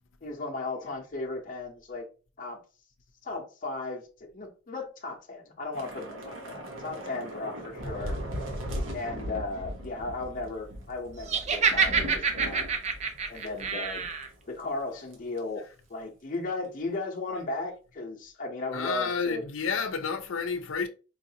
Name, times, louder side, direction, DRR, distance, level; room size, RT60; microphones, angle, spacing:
voice 1, 0.2-2.1 2.4-2.6 3.2-8.2 8.9-12.6 13.3-14.1 14.5-15.6 15.9-19.4, left 3 dB, 40° left, 0.7 m, -36 dB
Thunder / Rain, 5.7-14.3 14.6-14.8 15.1-15.4, equal, 85° right, 1.1 m, -38 dB
Laughter, 11.3-14.3, right 5 dB, 35° right, 0.5 m, -27 dB
voice 2, 18.7-20.9, left 5 dB, 85° left, 0.5 m, -30 dB
4.7 x 2.5 x 2.7 m
head